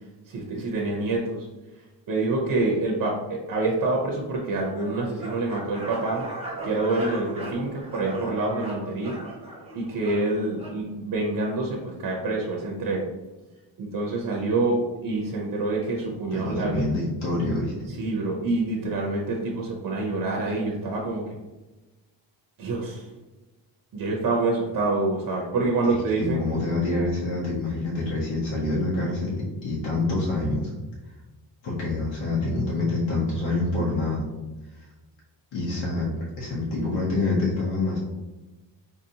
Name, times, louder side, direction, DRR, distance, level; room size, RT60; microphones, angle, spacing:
voice 1, 0.3-1.5 2.1-6.2 6.6-9.2 9.7-13.1 13.8-16.9 17.9-21.2 22.6-23.1 23.9-26.4, right 2 dB, 50° right, -1 dB, 0.6 m, -26 dB
sound 1, 4.7-10.8, right 2 dB, 15° right, 0.7 m, -37 dB
voice 2, 16.3-17.9 26.2-30.7 31.6-34.3 35.5-36.1 36.4-38.0, left 2 dB, 85° left, -5 dB, 1.0 m, -26 dB
3.9 x 2.7 x 2.7 m, 1.1 s
wide cardioid pair, 170°, 44 cm